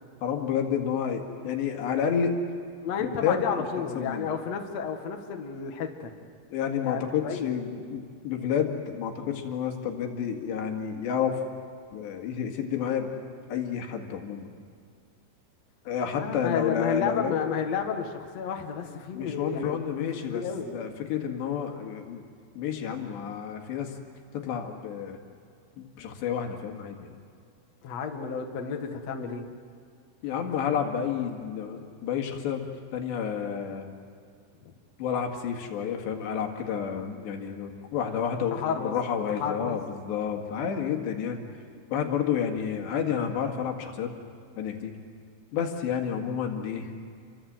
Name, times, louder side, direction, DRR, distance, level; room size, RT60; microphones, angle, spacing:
voice 1, 0.2-2.4 3.0-3.4 3.7-4.3 6.5-11.4 11.9-13.1 13.5-14.5 15.9-17.4 19.1-20.4 20.7-22.2 22.6-23.9 24.3-25.2 26.0-27.1 30.2-33.9 35.0-41.4 41.9-44.1 44.6-44.9 45.5-46.9, left 8 dB, 70° left, 3 dB, 4.1 m, -30 dB
voice 2, 2.8-6.1 6.8-7.5 16.1-19.8 20.3-20.7 27.8-29.4 38.5-38.9 39.4-39.8, left 7 dB, 55° left, 3 dB, 2.0 m, -31 dB
29.0 x 24.0 x 7.8 m, 2.3 s
omnidirectional pair, 5.3 m